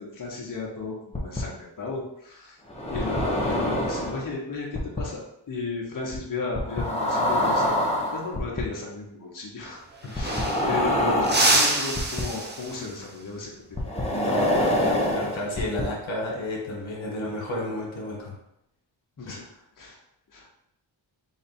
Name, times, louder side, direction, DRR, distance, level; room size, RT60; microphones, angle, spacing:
voice 1, 0.0-2.6 2.9-5.2 5.5-7.7 8.1-9.8 10.1-13.5 14.3-14.6 19.2-19.4 19.8-20.0 20.3-20.5, left 4 dB, 45° left, -4 dB, 1.0 m, -34 dB
sound 1, 1.1-1.4 2.7-4.3 4.7-5.0 6.5-8.6 10.2-12.2 13.8-15.8, left 1 dB, 15° left, 0.7 m, -25 dB
sound 2, 9.6-9.7 9.9-10.9 11.2-13.0 15.5-15.8 17.2-17.7, right 2 dB, 25° right, 0.5 m, -26 dB
voice 2, 14.1-18.3 19.3-19.4, left 1 dB, 85° left, -2 dB, 1.2 m, -31 dB
4.1 x 2.3 x 4.1 m, 0.80 s
wide cardioid pair, 135°, 46 cm